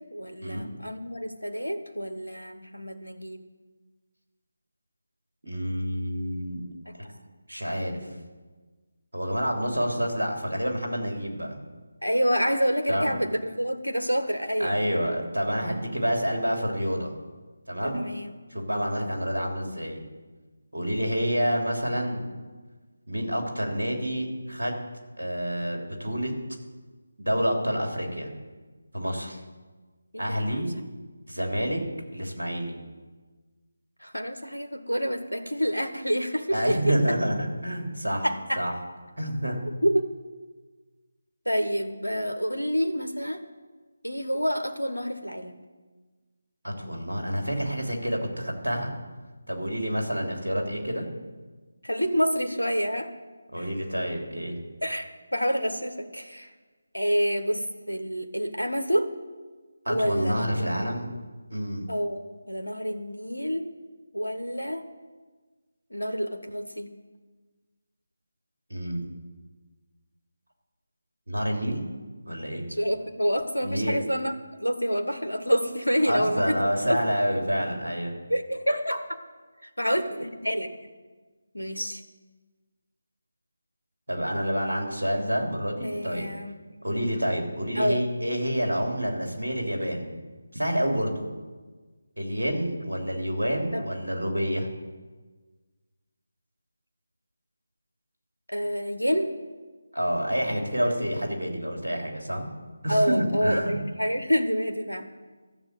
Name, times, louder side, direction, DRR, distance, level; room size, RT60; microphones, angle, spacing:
voice 1, 0.0-3.5 6.9-7.0 12.0-14.8 17.8-18.3 30.1-30.6 34.0-37.2 38.2-38.6 39.8-40.1 41.4-43.4 44.0-45.6 51.8-53.1 53.6-53.7 54.8-56.5 56.9-59.1 59.9-60.5 61.9-63.6 64.1-64.8 65.9-66.9 72.7-77.0 78.3-79.0 79.6-80.7 81.5-82.0 85.8-86.5 87.7-88.0 93.7-93.8 98.5-99.3 102.9-105.1, equal, 85° left, 7 dB, 1.2 m, -28 dB
voice 2, 5.4-6.6 7.0-7.1 7.5-8.0 9.1-11.6 12.9-13.1 14.6-17.1 17.7-18.1 18.5-20.0 20.7-22.2 23.1-24.7 25.2-26.3 27.2-28.3 28.9-29.4 30.2-30.7 31.3-31.8 32.1-32.7 36.5-38.2 38.6-38.7 39.2-39.6 46.6-48.9 49.5-51.1 53.5-54.6 59.8-61.1 61.5-61.8 68.7-69.0 71.3-71.9 72.3-72.6 73.6-74.0 76.0-78.1 84.1-86.3 86.8-90.1 90.5-91.2 92.2-94.7 99.9-102.5 102.8-103.8, equal, 75° right, 1 dB, 3.2 m, -28 dB
13.0 x 7.1 x 8.2 m, 1.3 s
figure-of-eight pair, 155°, 0 cm